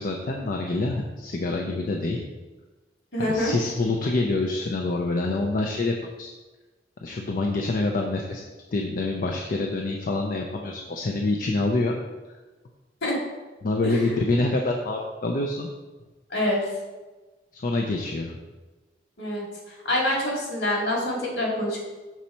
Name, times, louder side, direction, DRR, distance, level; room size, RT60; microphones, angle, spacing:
voice 1, 0.0-2.2 3.2-6.3 7.0-11.9 13.6-15.7 17.5-18.4, left 2 dB, 50° left, 1 dB, 0.5 m, -26 dB
voice 2, 3.1-3.5 13.0-13.2 13.8-14.1 16.3-16.7 19.2-21.8, left 1 dB, 65° left, -3 dB, 2.0 m, -26 dB
6.1 x 4.2 x 4.3 m, 1.2 s
head